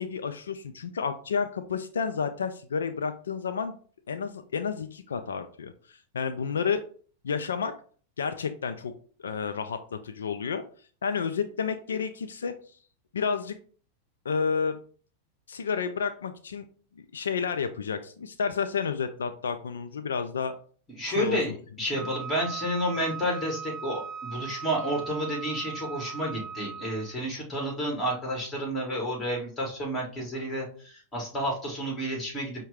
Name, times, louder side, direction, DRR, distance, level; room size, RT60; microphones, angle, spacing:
voice 1, 0.0-3.8 4.1-6.8 7.2-7.7 8.2-8.9 9.2-10.6 11.0-12.5 13.1-13.6 14.2-14.8 15.5-16.7 17.1-20.5 21.1-21.4 22.0-22.1, left 6 dB, 90° left, 9 dB, 0.3 m, -30 dB
voice 2, 20.9-32.7, equal, 20° left, 0 dB, 2.0 m, -31 dB
Wind instrument woodwind instrument, 21.9-27.2, right 6 dB, 15° right, 0.7 m, -39 dB
5.6 x 2.2 x 3.4 m, 0.43 s
hypercardioid pair, 110°, 0 cm